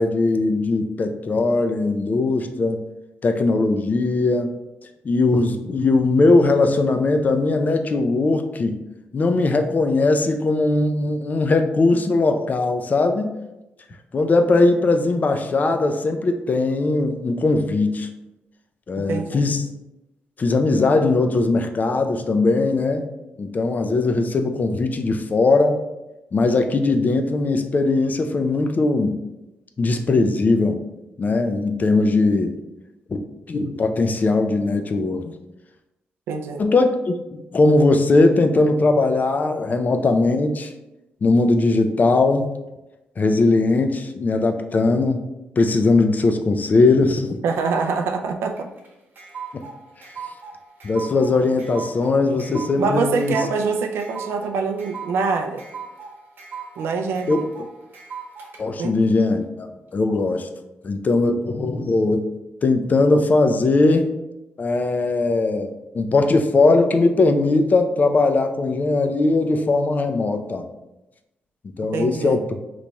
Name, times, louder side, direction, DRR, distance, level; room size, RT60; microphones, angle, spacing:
voice 1, 0.0-2.8 3.2-4.5 5.0-8.8 9.1-13.3 14.1-18.1 18.9-19.6 20.4-23.1 23.4-25.8 26.3-29.2 29.8-30.8 31.2-32.6 33.1-35.3 36.6-40.7 41.2-42.5 43.2-45.2 45.6-47.4 50.8-53.4 57.3-57.4 58.6-60.5 60.8-62.2 62.6-64.1 64.6-70.6 71.8-72.4, left 3 dB, 45° left, 6 dB, 0.4 m, -19 dB
voice 2, 19.0-19.4 36.3-36.6 47.4-48.7 52.8-55.6 56.8-57.5 58.8-58.9 71.9-72.4, right 4 dB, 85° right, 5 dB, 0.3 m, -24 dB
sound 1, 48.5-58.6, right 6 dB, 60° right, 0.9 m, -38 dB
3.9 x 3.0 x 2.2 m, 0.97 s
cardioid pair, 60°, 4 cm